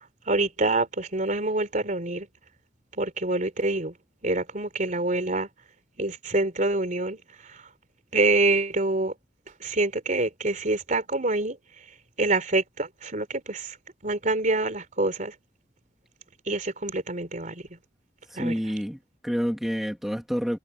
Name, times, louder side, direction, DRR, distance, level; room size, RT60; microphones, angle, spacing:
voice 1, 0.3-2.3 2.9-3.9 4.2-5.5 6.0-7.6 8.1-9.1 9.6-11.6 12.2-13.8 14.0-15.3 16.5-17.6 18.3-18.6, right 2 dB, 45° right, 3.5 m, -26 dB
voice 2, 18.3-20.6, equal, ahead, 2.2 m, -28 dB
head